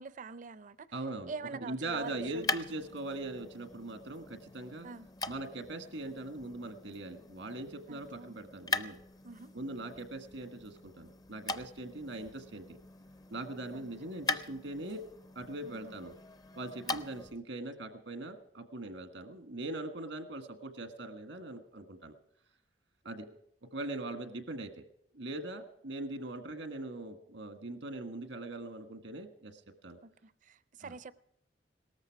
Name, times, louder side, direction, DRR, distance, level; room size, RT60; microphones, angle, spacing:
voice 1, 0.0-0.9 1.3-2.6 4.8-5.1 7.9-8.4 9.2-9.5 13.7-13.9 15.6-15.9 16.8-17.0 30.0-31.1, right 4 dB, 45° right, 0.5 m, -45 dB
voice 2, 0.9-1.3 1.6-4.9 5.3-9.0 9.5-12.8 13.3-15.0 15.3-16.1 16.5-22.1 23.0-23.3 23.7-24.7 25.1-30.0 30.8-30.9, right 2 dB, 90° right, 1.6 m, -41 dB
sound 1, 1.8-17.4, left 3 dB, 20° left, 0.5 m, -42 dB
18.5 x 13.5 x 4.7 m
head